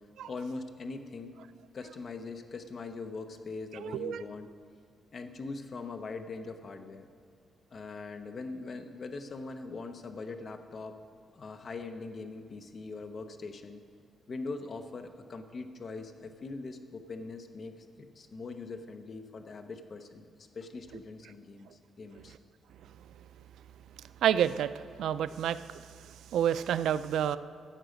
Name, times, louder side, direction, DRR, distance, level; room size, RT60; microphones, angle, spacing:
voice 1, 0.3-1.3 1.7-4.5 5.1-7.1 7.7-11.0 11.3-13.8 14.3-20.2 20.5-21.7 22.0-22.3 25.3-25.4, left 3 dB, 35° left, 7 dB, 0.7 m, -41 dB
voice 2, 3.8-4.2 24.2-24.7 25.0-25.6 26.3-27.4, right 10 dB, 75° right, 14 dB, 0.3 m, -28 dB
12.5 x 7.7 x 5.1 m, 2.2 s
cardioid pair, 165°, 0 cm